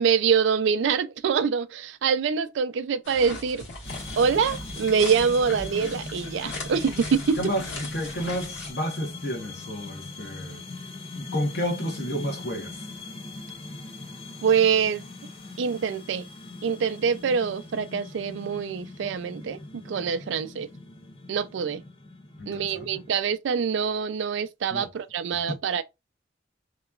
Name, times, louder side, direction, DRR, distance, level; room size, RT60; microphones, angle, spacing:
voice 1, 0.0-3.6 4.2-7.4 14.4-15.0 15.6-16.3 16.6-20.7 21.3-21.8 22.5-25.8, right 6 dB, 75° right, 0.4 m, -25 dB
sound 1, 3.0-8.7, left 2 dB, 80° left, 1.5 m, -38 dB
sound 2, 3.8-23.1, left 3 dB, 30° left, 0.5 m, -41 dB
voice 2, 7.4-10.6 11.1-12.8 22.4-23.0 24.7-24.9 25.5-25.6, equal, 60° left, 0.9 m, -31 dB
2.9 x 2.3 x 2.3 m
head